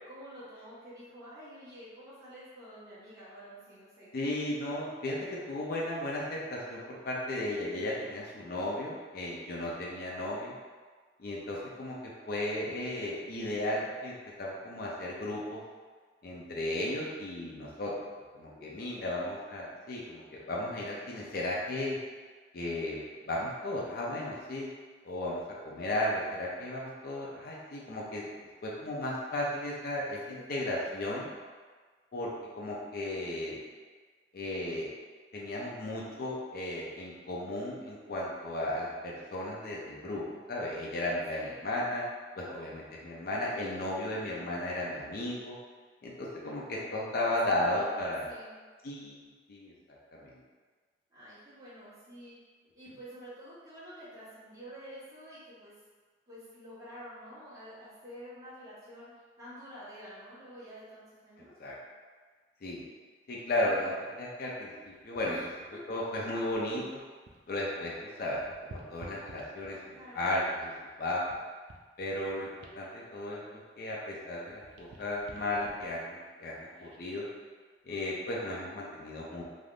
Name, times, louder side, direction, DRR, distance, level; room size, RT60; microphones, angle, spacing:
voice 1, 0.1-4.1 7.6-8.3 18.4-19.4 30.2-30.5 41.3-41.7 46.4-48.6 51.1-52.4 52.7-55.7 56.3-61.5 65.2-65.5 65.7-65.8 69.9-70.3, equal, 20° right, -12 dB, 1.2 m, -49 dB
voice 2, 4.1-5.2 5.5-10.5 11.2-11.9 12.3-14.1 14.4-15.6 16.2-17.9 18.3-22.0 22.5-24.7 25.0-28.3 28.6-31.3 32.1-32.3 32.6-33.6 34.3-34.9 35.3-40.2 40.5-42.0 42.4-45.6 46.0-48.3 48.8-49.7 50.1-50.4 61.6-61.8 62.6-62.8 63.3-65.4 65.9-67.0 67.5-68.4 68.7-70.7 71.0-71.3 72.0-77.3 77.9-79.4, left 1 dB, 60° left, -4 dB, 0.5 m, -35 dB
sound 1, 64.8-67.6 67.9-70.0 70.5-74.1 74.4-77.2 77.7-77.9, right 2 dB, 70° right, 0.4 m, -54 dB
3.4 x 2.5 x 2.4 m, 1.5 s
head